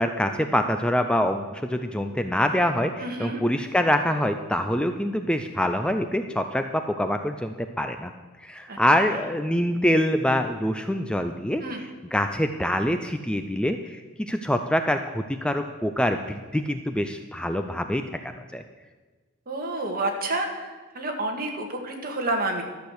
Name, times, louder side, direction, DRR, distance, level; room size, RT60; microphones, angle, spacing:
voice 1, 0.0-8.1 8.4-18.6, equal, 5° left, 7 dB, 0.4 m, -25 dB
voice 2, 3.0-3.4 8.7-8.8 11.6-11.8 19.5-20.7 21.0-22.6, right 2 dB, 45° right, 2 dB, 1.9 m, -29 dB
13.0 x 6.7 x 7.9 m, 1.3 s
head